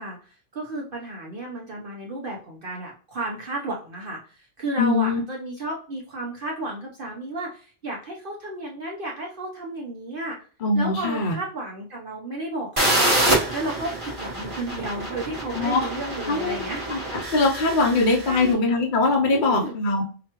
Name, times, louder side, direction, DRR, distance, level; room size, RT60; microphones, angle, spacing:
voice 1, 0.0-10.4 10.7-13.2 13.5-16.8 17.9-18.6 19.3-19.8, right 2 dB, 50° right, -2 dB, 0.8 m, -33 dB
voice 2, 4.8-5.2 10.6-11.3 15.5-15.8 16.3-16.6 16.9-20.0, left 3 dB, 50° left, 0 dB, 0.7 m, -22 dB
sound 1, 12.8-18.4, right 1 dB, 30° right, 1.1 m, -26 dB
4.9 x 2.3 x 2.9 m, 0.39 s
omnidirectional pair, 1.3 m